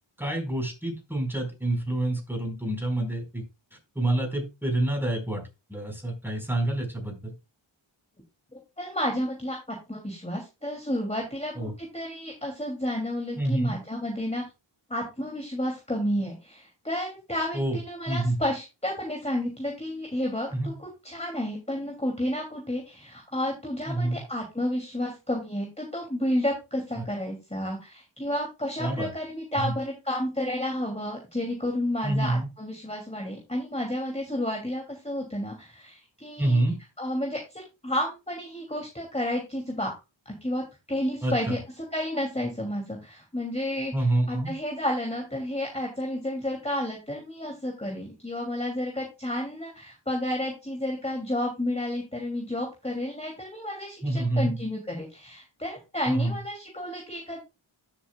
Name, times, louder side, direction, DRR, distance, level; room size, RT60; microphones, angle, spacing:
voice 1, 0.2-3.4 3.9-7.3 11.5-11.7 13.4-13.8 17.5-17.8 18.1-18.4 20.5-20.7 23.9-24.2 26.9-27.0 28.8-29.1 29.6-29.7 32.0-32.5 36.4-36.8 41.2-41.5 43.9-44.5 54.0-54.5 56.1-56.3, right 1 dB, 5° right, 2 dB, 4.8 m, -27 dB
voice 2, 8.5-14.4 14.9-36.6 37.0-39.9 40.4-40.6 40.9-41.6 41.9-57.4, left 1 dB, 15° left, 0 dB, 2.8 m, -31 dB
13.0 x 7.5 x 2.3 m, 0.26 s
wide cardioid pair, 45°, 49 cm